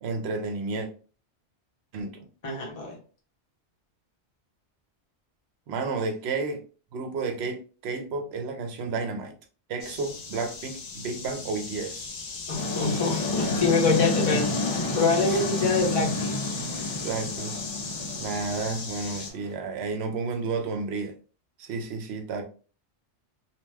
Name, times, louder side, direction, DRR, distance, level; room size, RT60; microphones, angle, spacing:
voice 1, 0.0-0.9 1.9-2.3 5.7-6.6 6.9-9.3 9.7-12.1 15.3-15.7 17.0-17.6 18.2-21.1 21.6-22.4, right 4 dB, 70° right, 0.8 m, -31 dB
voice 2, 2.4-2.9 12.5-14.5 15.0-16.4, left 4 dB, 35° left, 0.8 m, -25 dB
sound 1, 9.8-19.3, left 4 dB, 55° left, 0.5 m, -36 dB
sound 2, 12.5-19.5, left 2 dB, 85° left, 1.2 m, -30 dB
2.7 x 2.2 x 3.2 m
omnidirectional pair, 1.2 m